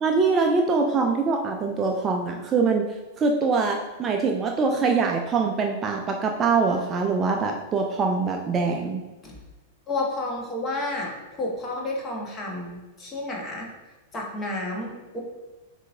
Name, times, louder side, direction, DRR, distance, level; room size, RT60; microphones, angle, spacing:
voice 1, 0.0-2.8 3.2-9.0, right 4 dB, 25° right, 2 dB, 0.4 m, -23 dB
voice 2, 9.9-13.7 14.1-15.2, left 2 dB, 20° left, -1 dB, 1.2 m, -31 dB
7.2 x 2.7 x 2.6 m, 1.1 s
figure-of-eight pair, 95°, 0 cm